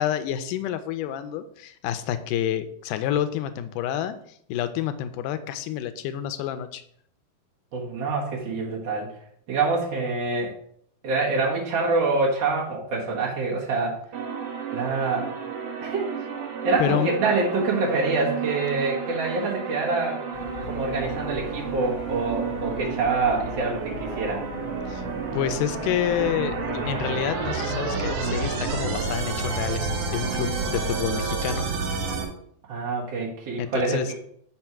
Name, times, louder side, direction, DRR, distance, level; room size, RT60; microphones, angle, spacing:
voice 1, 0.0-4.2 4.5-6.8 16.8-17.1 24.9-25.0 25.3-31.6 33.6-34.1, left 10 dB, 85° left, 11 dB, 2.1 m, -28 dB
voice 2, 7.7-9.1 9.5-10.5 11.0-14.0 14.7-15.3 15.8-16.2 16.6-20.2 20.6-24.4 32.7-34.1, right 3 dB, 55° right, -4 dB, 2.3 m, -26 dB
sound 1, 14.1-32.2, right 5 dB, 75° right, 2.8 m, -30 dB
sound 2, 20.3-31.1, left 6 dB, 70° left, 1.3 m, -40 dB
5.7 x 4.4 x 6.0 m, 0.66 s
omnidirectional pair, 3.7 m